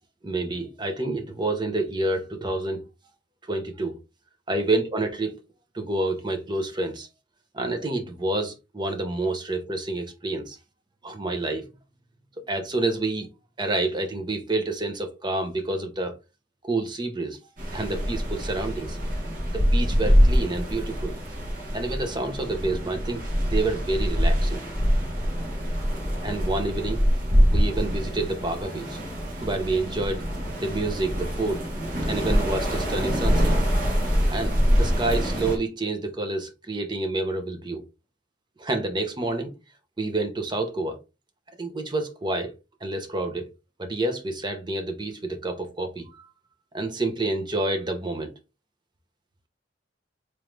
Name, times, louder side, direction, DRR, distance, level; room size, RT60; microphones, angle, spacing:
voice 1, 0.2-2.8 3.5-4.0 4.5-5.3 5.7-7.1 7.5-10.6 11.0-11.7 12.5-13.3 13.6-16.2 16.6-17.4 17.7-19.0 19.5-21.1 21.7-24.6 26.2-27.0 27.5-29.0 29.4-30.3 30.6-31.6 32.1-33.5 34.3-37.8 38.6-39.5 40.0-41.0 41.6-42.5 42.8-43.5 43.8-46.3 46.7-48.3, right 2 dB, 25° right, 0.7 m, -28 dB
sound 1, 17.6-35.6, equal, 45° right, 1.4 m, -24 dB
3.7 x 3.1 x 3.1 m
head